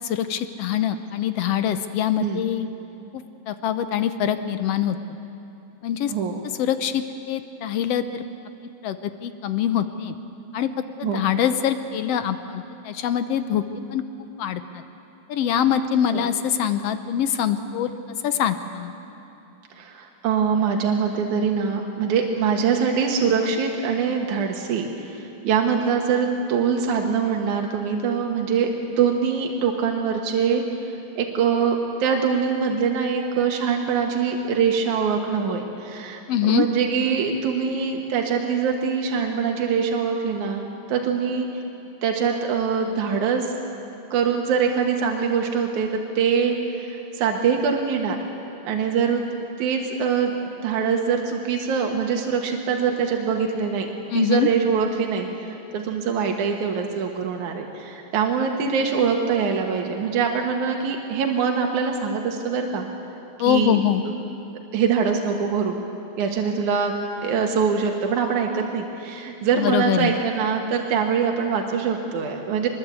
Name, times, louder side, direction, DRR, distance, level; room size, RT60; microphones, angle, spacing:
voice 1, 0.0-2.7 3.1-5.0 5.8-6.1 6.6-8.2 8.8-10.1 10.5-10.7 11.0-13.6 13.9-14.0 14.4-14.8 15.3-17.9 18.2-18.9 36.3-36.6 54.1-54.5 63.4-64.0 69.5-70.1, left 9 dB, 70° left, 10 dB, 1.7 m, -24 dB
voice 2, 19.7-41.5 42.0-43.5 44.1-45.9 46.2-48.2 48.6-49.2 49.6-53.9 54.1-62.9 63.5-63.8 64.7-65.8 66.2-66.9 67.2-72.7, right 6 dB, 80° right, 2 dB, 2.9 m, -23 dB
23.5 x 21.0 x 8.3 m, 2.8 s
omnidirectional pair, 3.4 m